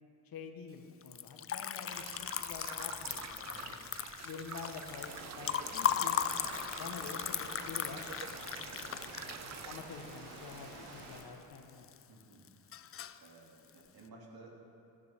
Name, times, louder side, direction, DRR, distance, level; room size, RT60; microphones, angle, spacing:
voice 1, 0.2-3.8 4.1-6.2 6.8-8.1 8.8-11.9, left 5 dB, 55° left, 4 dB, 1.3 m, -48 dB
Liquid, 1.0-11.2 11.5-12.2 12.5-13.3, left 9 dB, 35° left, 0.4 m, -37 dB
sound 1, 1.9-9.8, right 6 dB, 40° right, 0.7 m, -47 dB
sound 2, 4.9-11.2, right 2 dB, 80° right, 2.3 m, -49 dB
voice 2, 12.1-12.4 13.2-14.6, right 2 dB, 60° right, -1 dB, 2.5 m, -55 dB
15.0 x 10.5 x 3.6 m, 2.6 s
cardioid pair, 75°, 42 cm